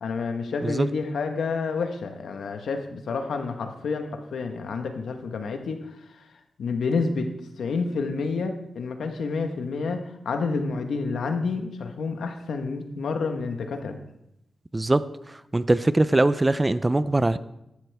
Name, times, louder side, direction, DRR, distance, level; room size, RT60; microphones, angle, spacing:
voice 1, 0.0-5.9 6.1-6.3 6.6-14.0, left 4 dB, 85° left, 6 dB, 1.2 m, -29 dB
voice 2, 14.7-15.0 15.5-17.4, right 2 dB, 15° right, 15 dB, 0.4 m, -21 dB
14.5 x 12.0 x 3.5 m, 0.84 s
wide cardioid pair, 130°, 0 cm